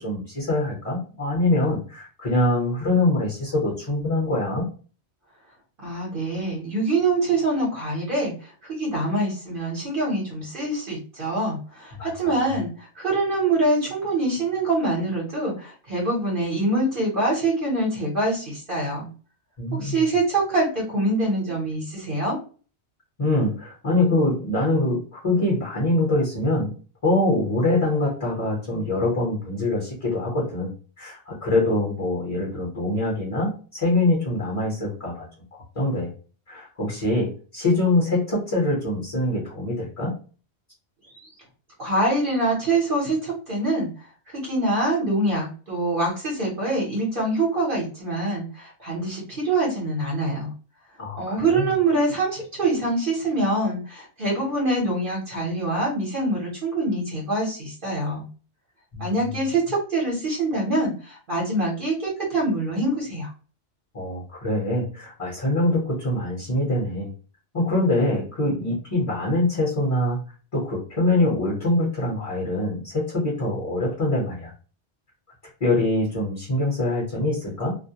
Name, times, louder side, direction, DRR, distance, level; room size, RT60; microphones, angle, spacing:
voice 1, 0.0-4.7 12.0-12.4 19.6-20.1 23.2-26.7 27.0-30.7 31.0-35.3 35.5-36.1 36.5-40.1 51.0-51.7 58.9-59.3 63.9-67.1 67.5-70.2 70.5-74.5 75.6-77.7, left 2 dB, 35° left, -4 dB, 0.8 m, -24 dB
voice 2, 5.8-19.1 19.7-22.4 41.1-41.3 41.8-43.9 44.3-50.5 51.1-58.2 59.0-63.3, right 2 dB, 55° right, -4 dB, 1.0 m, -25 dB
2.3 x 2.1 x 2.7 m, 0.38 s
omnidirectional pair, 1.1 m